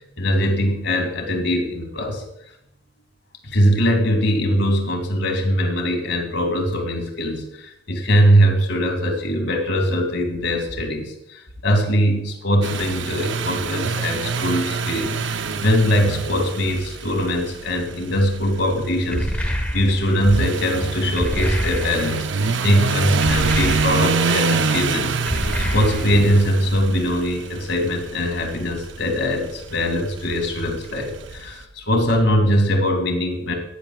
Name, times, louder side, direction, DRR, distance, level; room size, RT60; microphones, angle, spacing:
voice 1, 0.2-2.2 3.4-25.2 25.7-33.5, equal, 70° left, 3 dB, 2.4 m, -21 dB
sound 1, 12.6-31.5, right 4 dB, 70° right, 0.7 m, -26 dB
sound 2, 19.1-20.2 21.2-22.2 23.2-24.3 25.3-26.3, equal, 10° left, 1.2 m, -26 dB
15.5 x 10.5 x 2.4 m, 0.79 s
head